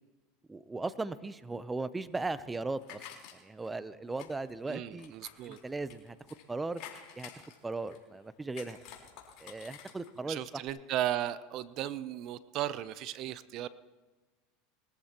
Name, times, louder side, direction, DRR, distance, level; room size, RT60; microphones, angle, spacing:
voice 1, 0.5-3.0 3.3-5.1 5.5-6.2 6.5-6.8 7.1-7.3 7.6-8.8 9.4-10.6, right 3 dB, 15° right, 15 dB, 0.7 m, -37 dB
sound 1, 2.0-3.7 4.1-6.4 6.7-8.2 8.5-10.3 10.6-10.7, left 9 dB, 60° left, 3.9 m, -50 dB
voice 2, 4.7-5.6 10.3-13.7, right 12 dB, 50° right, 16 dB, 0.6 m, -35 dB
22.5 x 14.0 x 3.0 m, 1.3 s
hypercardioid pair, 100°, 0 cm